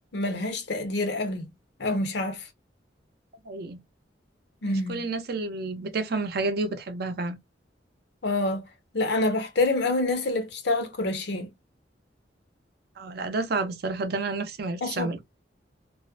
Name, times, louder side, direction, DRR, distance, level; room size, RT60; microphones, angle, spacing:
voice 1, 0.1-1.5 1.8-2.5 4.6-5.0 8.2-8.6 8.9-11.5 14.8-15.1, left 2 dB, 70° left, 0.6 m, -27 dB
voice 2, 3.5-3.8 4.7-7.4 13.0-15.2, right 3 dB, 60° right, 0.5 m, -30 dB
2.4 x 2.1 x 2.4 m
head